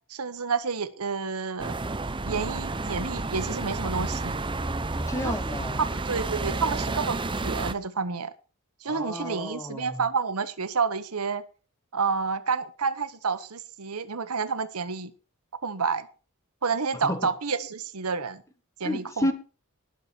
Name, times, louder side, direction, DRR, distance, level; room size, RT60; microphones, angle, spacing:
voice 1, 0.1-1.8 2.2-4.4 5.2-5.4 5.8-8.3 8.8-11.4 11.9-15.1 15.6-16.1 16.6-18.4 18.8-19.3, right 5 dB, 80° right, 1.1 m, -29 dB
sound 1, 1.6-7.7, right 2 dB, 20° right, 0.7 m, -30 dB
voice 2, 4.9-5.8 8.9-10.0 17.0-17.2 18.8-19.3, left 1 dB, 15° left, 1.4 m, -31 dB
19.5 x 6.7 x 4.5 m
head